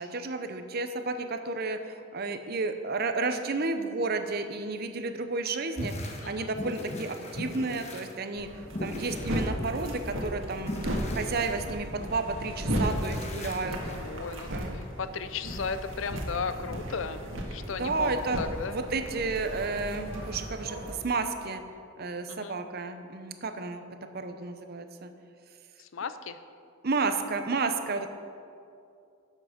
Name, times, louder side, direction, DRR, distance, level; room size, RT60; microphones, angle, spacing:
voice 1, 0.0-1.8 2.1-5.9 6.2-8.5 8.8-10.7 11.1-13.8 14.5-14.8 17.7-18.4 18.7-21.6 22.0-23.8 24.1-25.1 26.8-28.1, right 3 dB, 50° right, 8 dB, 0.7 m, -31 dB
sound 1, 5.8-6.3 6.5-8.1 8.6-10.0 10.6-12.2 12.7-14.0, left 1 dB, 35° left, 1.2 m, -38 dB
voice 2, 6.2-6.5 14.0-18.8 22.3-22.6 25.8-26.4, left 5 dB, 80° left, 12 dB, 0.6 m, -36 dB
sound 2, 8.4-20.9, equal, 80° right, 1.7 m, -35 dB
12.0 x 7.5 x 5.1 m, 2.5 s
head